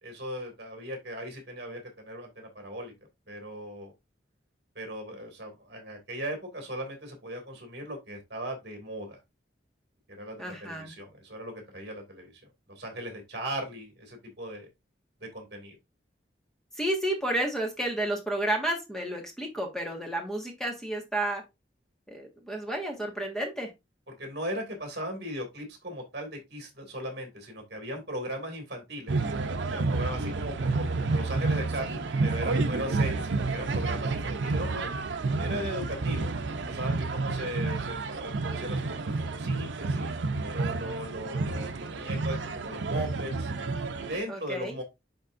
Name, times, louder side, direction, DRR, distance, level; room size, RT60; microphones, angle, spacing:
voice 1, 0.0-2.9 3.3-3.9 4.7-9.2 10.1-12.4 12.7-14.7 15.2-15.8 24.1-29.2 29.7-34.9 35.4-36.3 36.6-40.1 40.5-43.5 43.9-44.8, equal, 60° right, 2.4 m, -38 dB
voice 2, 10.4-10.9 16.7-21.4 22.1-23.7 37.4-37.7 44.3-44.7, right 1 dB, 5° left, 1.6 m, -31 dB
sound 1, 29.1-44.2, right 3 dB, 90° right, 0.6 m, -30 dB
10.5 x 3.6 x 2.5 m
head